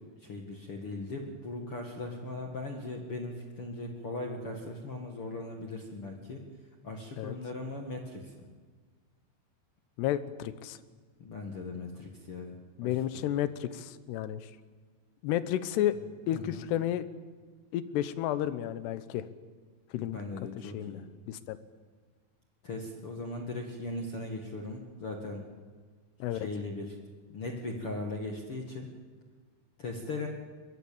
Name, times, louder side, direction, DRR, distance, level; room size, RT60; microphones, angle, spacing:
voice 1, 0.0-6.4 6.8-8.5 11.2-12.5 12.8-13.2 16.3-16.6 20.0-21.0 22.6-25.4 26.3-26.9 27.3-28.9 29.8-30.3, left 2 dB, 50° left, 2 dB, 1.6 m, -39 dB
voice 2, 10.0-10.8 12.8-14.5 15.2-16.0 16.3-17.0 17.7-19.3 19.9-20.2 20.6-21.0 21.3-21.6 26.2-26.5, left 12 dB, 75° left, 13 dB, 2.7 m, -32 dB
23.0 x 21.5 x 8.6 m, 1.5 s
omnidirectional pair, 5.4 m